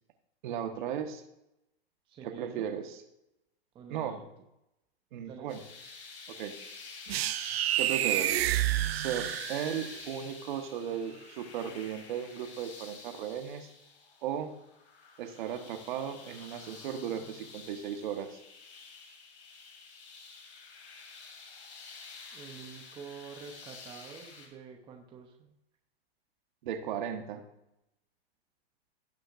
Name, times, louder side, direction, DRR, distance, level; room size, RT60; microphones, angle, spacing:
voice 1, 0.4-1.2 2.2-3.0 3.9-4.2 5.1-5.6 6.3-6.5 7.8-8.4 8.9-13.7 14.2-14.6 15.2-18.4 26.6-27.4, right 8 dB, 50° right, 6 dB, 1.4 m, -36 dB
voice 2, 2.1-2.7 3.7-4.3 5.3-5.6 22.3-25.5, right 6 dB, 15° right, 2 dB, 0.8 m, -47 dB
sound 1, 5.5-24.5, left 4 dB, 90° left, 2.9 m, -49 dB
sound 2, 7.1-10.0, right 14 dB, 70° right, 0.5 m, -29 dB
17.0 x 6.3 x 2.6 m, 0.85 s
hypercardioid pair, 150°, 31 cm